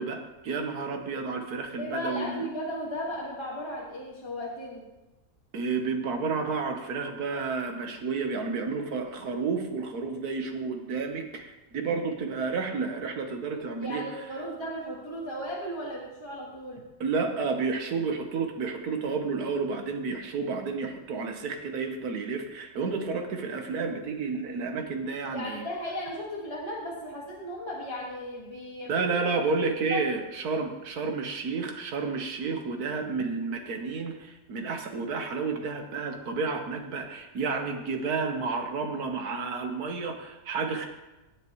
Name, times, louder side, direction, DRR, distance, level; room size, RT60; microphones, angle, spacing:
voice 1, 0.0-2.5 5.5-14.0 17.0-25.6 28.9-40.8, right 4 dB, 70° right, 5 dB, 1.6 m, -31 dB
voice 2, 1.8-4.8 13.7-16.8 25.3-29.3 29.9-30.0, equal, 15° left, -4 dB, 1.7 m, -36 dB
17.5 x 6.7 x 3.1 m, 1.0 s
omnidirectional pair, 1.7 m